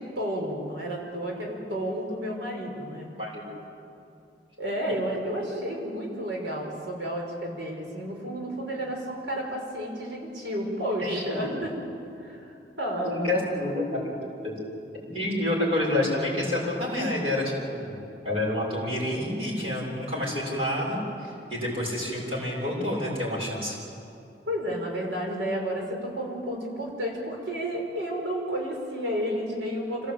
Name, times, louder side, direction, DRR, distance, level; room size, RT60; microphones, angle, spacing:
voice 1, 0.0-3.1 4.6-11.7 12.2-13.3 13.6-13.7 15.6-15.8 24.5-30.1, equal, 75° right, 0 dB, 5.3 m, -31 dB
voice 2, 13.0-14.0 14.4-14.5 15.0-18.0 18.2-23.8, left 1 dB, 30° right, -4 dB, 6.9 m, -28 dB
26.0 x 17.5 x 9.0 m, 2.6 s
head